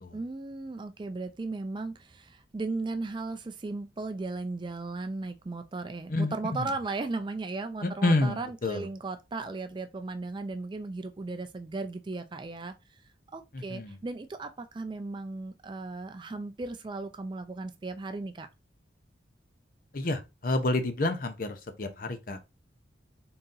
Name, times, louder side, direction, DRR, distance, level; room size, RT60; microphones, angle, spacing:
voice 1, 0.1-12.7 13.3-18.5, right 3 dB, 25° right, 0.3 m, -36 dB
voice 2, 6.1-6.7 7.8-8.9 13.5-14.0 19.9-22.4, left 2 dB, 50° left, 0.6 m, -29 dB
3.8 x 2.7 x 3.8 m
head